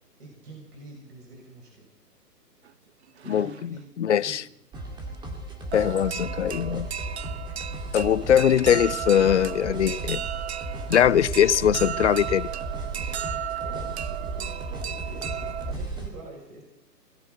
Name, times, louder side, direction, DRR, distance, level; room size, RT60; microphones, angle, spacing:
voice 1, 0.2-1.9 3.2-3.9 4.2-4.5 13.6-16.6, right 2 dB, 65° right, 7.3 m, -45 dB
sound 1, 2.6-2.7 3.1-3.8 5.1-5.2 5.7-15.7, right 9 dB, 45° right, 0.5 m, -35 dB
voice 2, 3.3-3.7 4.0-4.4 5.7-6.9 7.9-10.2 10.9-12.5, left 9 dB, 45° left, 0.6 m, -21 dB
sound 2, 4.7-16.1, right 2 dB, 10° right, 2.4 m, -35 dB
20.5 x 15.5 x 4.2 m
figure-of-eight pair, 140°, 49 cm